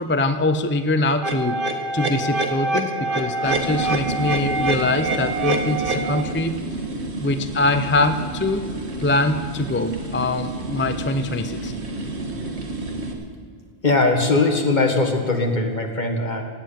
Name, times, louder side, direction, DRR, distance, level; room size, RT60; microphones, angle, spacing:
voice 1, 0.0-6.6 7.2-8.6 9.0-11.7, left 2 dB, 20° left, 9 dB, 0.3 m, -23 dB
sound 1, 1.2-6.2, right 3 dB, 55° right, 1.5 m, -25 dB
sound 2, 3.4-13.1, right 2 dB, 75° right, 1.8 m, -30 dB
voice 2, 13.8-16.4, left 3 dB, 45° left, 3 dB, 1.7 m, -20 dB
16.5 x 7.9 x 8.9 m, 2.1 s
omnidirectional pair, 1.1 m